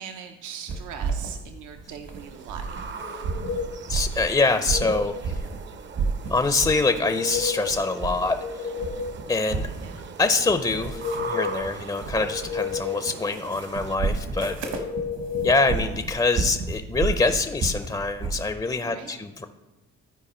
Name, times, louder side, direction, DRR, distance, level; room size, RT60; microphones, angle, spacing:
voice 1, 0.0-3.3 9.8-10.2 18.8-19.3, right 7 dB, 80° right, 5 dB, 0.6 m, -41 dB
sound 1, 0.7-2.9 3.2-5.6 5.9-6.9 7.2-8.4 8.7-18.5, right 4 dB, 65° right, 1.2 m, -32 dB
sound 2, 2.1-14.0, right 5 dB, 40° right, 0.5 m, -41 dB
sound 3, 3.0-3.8 4.3-5.2 6.8-7.8 8.1-9.2 10.6-11.7 12.1-13.1 14.7-15.7, left 5 dB, 80° left, 1.4 m, -32 dB
voice 2, 3.9-5.4 6.3-8.7 9.3-9.7 10.2-14.9 15.4-19.5, left 3 dB, 15° left, 8 dB, 0.4 m, -25 dB
13.0 x 4.7 x 4.2 m, 1.1 s
cardioid pair, 90°, 30 cm